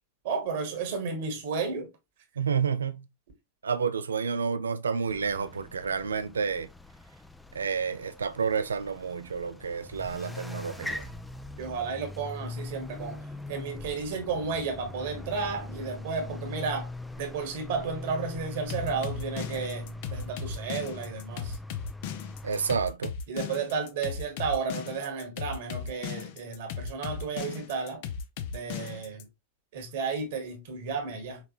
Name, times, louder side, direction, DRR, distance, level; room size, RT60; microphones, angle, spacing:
voice 1, 0.2-1.9 11.6-16.9 17.2-21.6 23.3-28.0 28.5-29.2 29.7-31.4, right 5 dB, 55° right, 1.5 m, -33 dB
voice 2, 2.4-3.1 3.6-6.7 7.5-11.1 22.4-23.1, right 6 dB, 70° right, 0.5 m, -30 dB
sound 1, 5.1-22.7, left 2 dB, 5° left, 0.4 m, -41 dB
sound 2, 18.7-29.2, left 7 dB, 50° left, 0.6 m, -36 dB
5.7 x 3.3 x 2.5 m
figure-of-eight pair, 90°, 0 cm